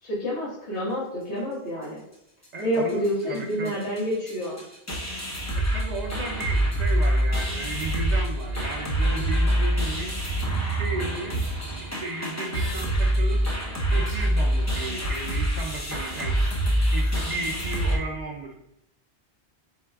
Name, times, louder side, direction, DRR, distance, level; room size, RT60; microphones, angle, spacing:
voice 1, 0.0-2.0 2.6-4.6, equal, 85° left, -8 dB, 1.8 m, -28 dB
sound 1, 2.4-2.5 2.7-3.1 3.3-3.4 3.6-18.0, right 1 dB, 20° left, 0.6 m, -25 dB
voice 2, 2.5-3.8 5.5-11.5 11.8-18.6, right 3 dB, 50° right, 1 dB, 0.6 m, -35 dB
4.6 x 4.2 x 2.3 m, 0.78 s
omnidirectional pair, 1.1 m